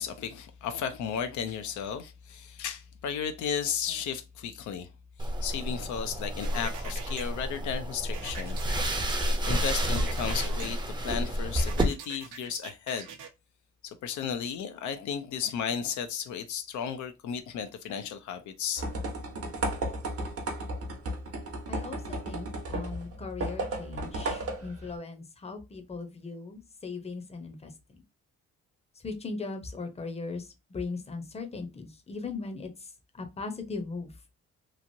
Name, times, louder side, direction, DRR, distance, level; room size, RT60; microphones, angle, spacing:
voice 1, 0.0-4.9 5.2-8.6 9.4-13.1 13.8-18.9, left 7 dB, 75° left, 0.5 m, -34 dB
sound 1, 5.2-11.8, right 1 dB, 15° right, 0.6 m, -30 dB
sound 2, 6.4-7.2 8.1-10.7 11.6-13.3, right 6 dB, 85° right, 0.7 m, -43 dB
sound 3, 18.8-25.0, right 1 dB, 50° right, 0.9 m, -34 dB
voice 2, 21.7-28.0 29.0-34.1, left 4 dB, 20° left, 0.7 m, -39 dB
3.0 x 2.5 x 2.6 m
cardioid pair, 90°, 30 cm